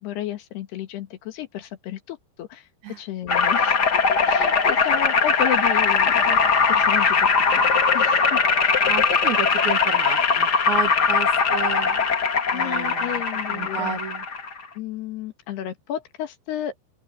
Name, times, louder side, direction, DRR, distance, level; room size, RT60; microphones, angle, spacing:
voice 1, 0.0-2.7 3.0-8.4 12.5-14.0 14.8-16.8, left 11 dB, 80° left, 3.7 m, -32 dB
sound 1, 3.3-14.6, left 5 dB, 45° left, 1.4 m, -20 dB
voice 2, 8.8-12.0 12.5-13.1 13.5-14.2, right 7 dB, 55° right, 2.7 m, -31 dB
open air
omnidirectional pair, 4.6 m